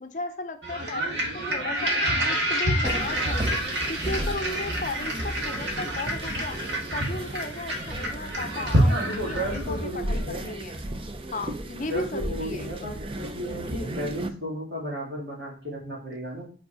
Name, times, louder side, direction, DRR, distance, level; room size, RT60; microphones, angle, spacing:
voice 1, 0.0-1.2 1.5-3.6 3.9-6.6 6.9-10.9 11.3-12.9, left 2 dB, 45° left, 7 dB, 0.6 m, -35 dB
sound 1, 0.6-9.9, equal, 85° right, 1.8 m, -28 dB
sound 2, 2.8-14.3, right 1 dB, 30° right, 0.5 m, -35 dB
voice 2, 8.7-10.5 11.9-16.4, equal, 65° right, -3 dB, 2.5 m, -34 dB
5.0 x 4.7 x 4.3 m, 0.39 s
head